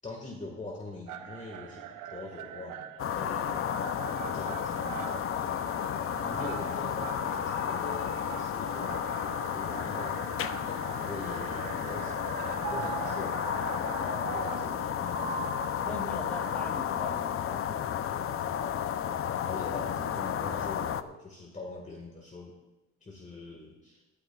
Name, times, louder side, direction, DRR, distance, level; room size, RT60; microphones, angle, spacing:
voice 1, 0.0-3.7 4.3-5.6 6.3-10.2 10.6-12.2 12.7-13.4 14.3-15.7 19.5-22.6 23.0-24.0, left 3 dB, 25° left, 0 dB, 1.8 m, -43 dB
sound 1, 1.1-14.6, right 9 dB, 85° right, 0.8 m, -43 dB
sound 2, 3.0-21.0, left 9 dB, 45° left, 0.6 m, -32 dB
voice 2, 6.1-6.6 14.0-14.4 15.9-18.6, equal, 5° left, 2 dB, 2.5 m, -43 dB
Piano, 12.6-16.7 17.2-17.3, right 8 dB, 55° right, 1.4 m, -41 dB
17.5 x 12.5 x 2.4 m, 1.1 s
cardioid pair, 90°, 30 cm